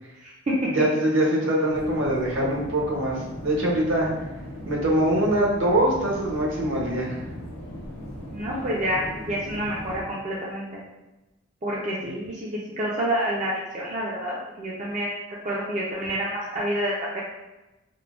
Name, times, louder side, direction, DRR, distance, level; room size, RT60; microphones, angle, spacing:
voice 1, 0.2-0.6 8.3-10.8 11.6-12.5 12.8-15.2 15.4-17.2, equal, 35° right, -6 dB, 0.4 m, -28 dB
voice 2, 0.7-4.1 4.7-7.2, right 1 dB, 65° right, -3 dB, 0.7 m, -23 dB
sound 1, 1.7-10.0, equal, 85° left, 0.7 m, -38 dB
3.6 x 2.0 x 2.3 m, 1.0 s
head